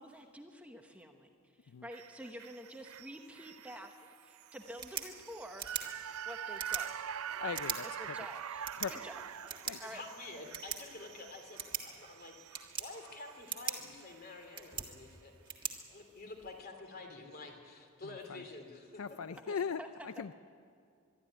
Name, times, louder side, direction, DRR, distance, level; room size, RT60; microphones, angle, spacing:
voice 1, 0.0-5.7 6.0-7.2 8.0-9.1 9.4-10.0 19.5-20.2, equal, 5° right, 3 dB, 1.0 m, -49 dB
sound 1, 1.9-14.2 14.6-14.7, right 9 dB, 80° right, 0.5 m, -45 dB
sound 2, 4.6-16.6, right 7 dB, 20° right, 1.6 m, -44 dB
voice 2, 7.4-7.9 8.8-8.9 9.7-9.8 18.3-18.4 19.0-20.3, left 6 dB, 75° left, 13 dB, 0.4 m, -39 dB
voice 3, 9.8-15.3 15.6-19.0, left 3 dB, 45° left, 3 dB, 3.0 m, -49 dB
23.0 x 13.0 x 9.8 m, 2.3 s
head